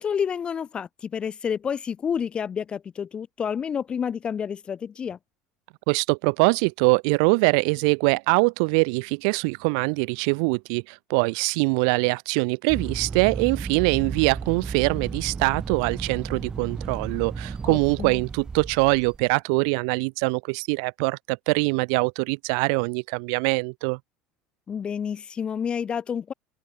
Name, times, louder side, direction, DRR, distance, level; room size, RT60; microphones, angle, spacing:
voice 1, 0.0-5.2 17.7-18.2 24.7-26.3, left 7 dB, 35° left, 0.5 m, -29 dB
voice 2, 5.9-24.0, right 37 dB, 70° right, 0.4 m, -23 dB
sound 1, 12.7-19.3, right 5 dB, 25° right, 1.3 m, -34 dB
open air
hypercardioid pair, 85°, 3 cm